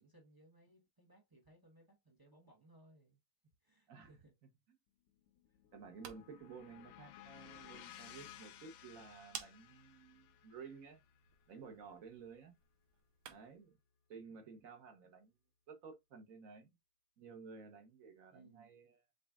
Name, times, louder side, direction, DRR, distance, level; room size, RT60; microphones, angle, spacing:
voice 1, 0.0-3.2 3.6-4.4 5.5-5.6 18.3-18.7, right 2 dB, 25° right, 0.5 m, -65 dB
sound 1, 5.1-13.4, left 11 dB, 70° left, 1.3 m, -58 dB
voice 2, 5.7-11.0 11.5-12.5 13.3-13.8 14.1-15.3 15.7-16.7 17.2-18.9, right 5 dB, 50° right, 1.1 m, -54 dB
sound 2, 5.7-13.7, right 8 dB, 75° right, 1.5 m, -57 dB
5.3 x 4.0 x 2.3 m
omnidirectional pair, 2.3 m